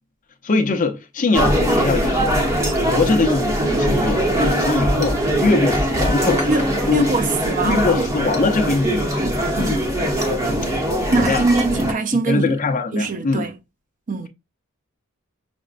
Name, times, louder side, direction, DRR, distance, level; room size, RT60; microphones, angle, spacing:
voice 1, 0.4-2.3 2.9-6.5 6.9-7.1 7.6-9.1 9.5-9.8 11.2-11.4 11.7-11.9 12.3-13.4, left 3 dB, 40° left, 0.6 m, -22 dB
sound 1, 1.3-11.9, equal, 15° right, 0.9 m, -21 dB
voice 2, 6.9-8.1 9.2-9.8 11.1-12.6 12.9-13.5 14.1-14.3, right 3 dB, 40° right, 0.5 m, -22 dB
6.0 x 2.1 x 2.4 m
head